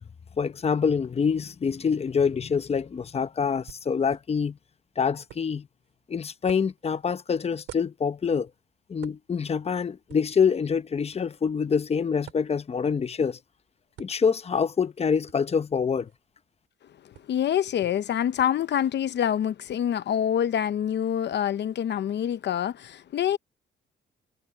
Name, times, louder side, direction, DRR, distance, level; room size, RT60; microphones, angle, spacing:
voice 1, 0.4-4.6 5.0-5.7 6.1-8.5 8.9-13.4 14.0-16.1, left 6 dB, 30° left, 0.9 m, -26 dB
sound 1, 3.7-21.4, right 12 dB, 80° right, 4.4 m, -54 dB
voice 2, 17.0-23.4, left 9 dB, 60° left, 0.8 m, -26 dB
cardioid pair, 90°, 20 cm